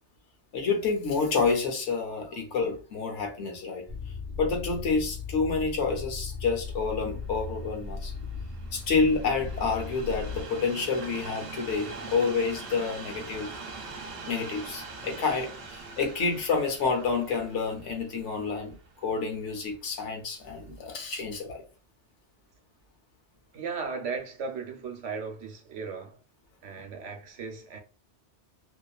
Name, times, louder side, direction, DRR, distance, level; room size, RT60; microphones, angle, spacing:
voice 1, 0.5-3.8 4.3-8.1 8.7-13.5 14.2-18.8 19.0-21.6, left 4 dB, 80° left, 1.1 m, -28 dB
sound 1, 3.9-10.4, left 4 dB, 15° right, 0.8 m, -37 dB
Train, 6.7-19.9 20.6-20.7, right 4 dB, 60° right, 0.8 m, -43 dB
voice 2, 23.5-26.2 26.6-27.8, right 5 dB, 85° right, 1.0 m, -36 dB
2.8 x 2.4 x 2.3 m
omnidirectional pair, 1.2 m